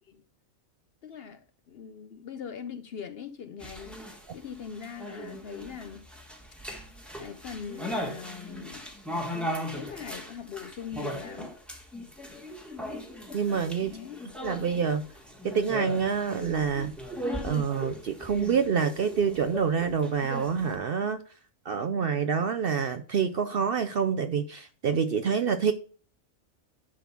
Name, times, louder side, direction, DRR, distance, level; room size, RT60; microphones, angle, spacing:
voice 1, 1.0-4.0 4.3-6.1 7.2-9.0 9.7-11.6 13.8-14.2, left 7 dB, 55° left, 0.7 m, -41 dB
sound 1, 3.6-20.7, equal, ahead, 1.3 m, -38 dB
voice 2, 13.3-14.0 14.4-15.1 15.4-17.0 17.4-21.2 21.6-25.7, right 6 dB, 60° right, 0.6 m, -27 dB
10.5 x 3.9 x 5.8 m
omnidirectional pair, 1.4 m